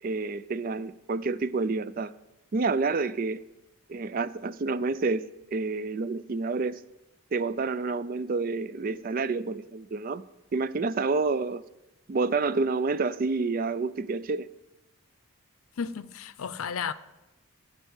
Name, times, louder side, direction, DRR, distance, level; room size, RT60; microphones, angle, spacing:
voice 1, 0.0-2.1 2.5-3.4 3.9-6.8 7.3-10.2 10.5-11.6 12.1-14.5, right 3 dB, 40° right, 0.4 m, -28 dB
voice 2, 15.8-16.9, left 6 dB, 80° left, 0.6 m, -33 dB
14.5 x 5.5 x 8.0 m
head